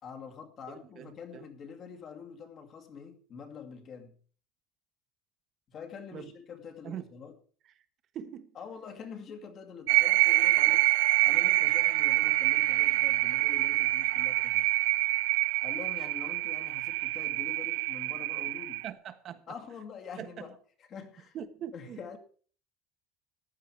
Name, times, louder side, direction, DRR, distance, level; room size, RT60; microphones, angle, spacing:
voice 1, 0.0-4.1 5.7-7.4 8.5-10.9 11.2-14.7 15.6-18.8 19.5-20.5 20.8-21.4 21.7-22.2, left 6 dB, 35° left, 2.3 m, -45 dB
voice 2, 0.7-1.4 6.1-6.3 6.8-7.0 8.1-8.5 18.8-19.5 20.2-20.5 21.3-22.2, right 9 dB, 40° right, 1.5 m, -42 dB
sound 1, 9.9-18.9, right 22 dB, 85° right, 0.5 m, -26 dB
15.0 x 11.0 x 4.7 m
cardioid pair, 155°, 0 cm